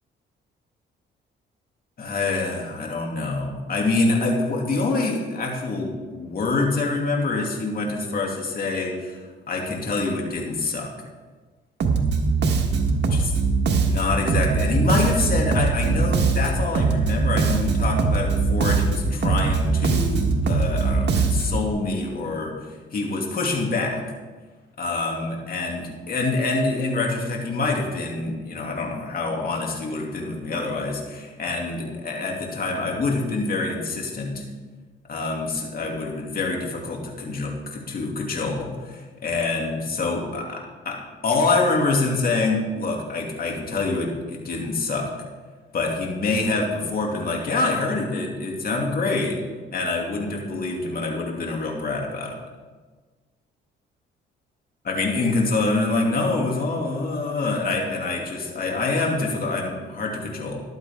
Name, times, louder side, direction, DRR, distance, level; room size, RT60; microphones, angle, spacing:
voice 1, 2.0-9.2 9.5-10.9 13.1-13.3 13.7-22.5 22.9-24.0 24.8-34.4 35.1-41.0 41.2-45.1 45.7-49.4 49.7-52.4 54.8-60.6, left 3 dB, 50° left, 0 dB, 2.8 m, -26 dB
Bass guitar, 11.8-21.7, right 4 dB, 60° right, 1.6 m, -21 dB
14.0 x 11.5 x 3.8 m, 1.4 s
cardioid pair, 90°, 20 cm